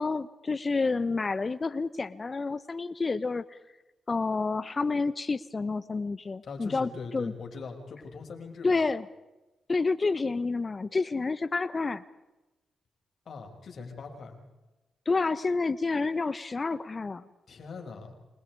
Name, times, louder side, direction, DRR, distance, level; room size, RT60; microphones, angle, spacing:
voice 1, 0.0-3.4 4.1-7.3 8.6-9.1 9.7-12.0 15.1-17.2, left 3 dB, 40° left, 16 dB, 1.2 m, -29 dB
voice 2, 6.4-8.8 13.2-14.4 17.5-18.1, left 4 dB, 65° left, 3 dB, 6.4 m, -41 dB
28.0 x 26.0 x 4.9 m, 1.1 s
supercardioid pair, 50°, 0 cm